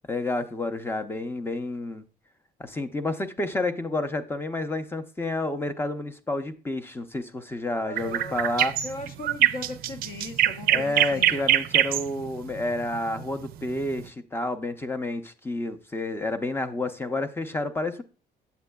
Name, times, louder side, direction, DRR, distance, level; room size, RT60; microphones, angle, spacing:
voice 1, 0.1-2.0 2.6-8.7 10.7-18.0, left 2 dB, 15° left, 0.5 m, -30 dB
voice 2, 7.8-8.4 8.8-11.5, left 2 dB, 55° left, 0.8 m, -38 dB
sound 1, 8.0-14.0, right 13 dB, 60° right, 0.4 m, -24 dB
8.1 x 7.5 x 2.2 m
cardioid pair, 110°, 17 cm